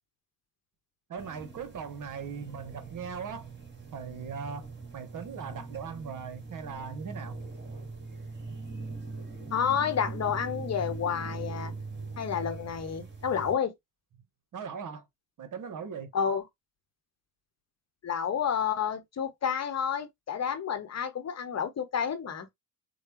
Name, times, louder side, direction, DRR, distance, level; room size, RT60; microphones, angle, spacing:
voice 1, 1.1-3.5 3.9-4.7 4.9-7.3 14.5-15.0 15.4-16.1, right 6 dB, 45° right, 1.2 m, -39 dB
sound 1, 1.2-13.5, right 3 dB, 25° right, 2.2 m, -41 dB
voice 2, 9.5-11.7 12.2-13.7 16.1-16.4 18.0-22.5, left 7 dB, 35° left, 1.0 m, -30 dB
6.6 x 2.3 x 3.0 m
hypercardioid pair, 55°, 45 cm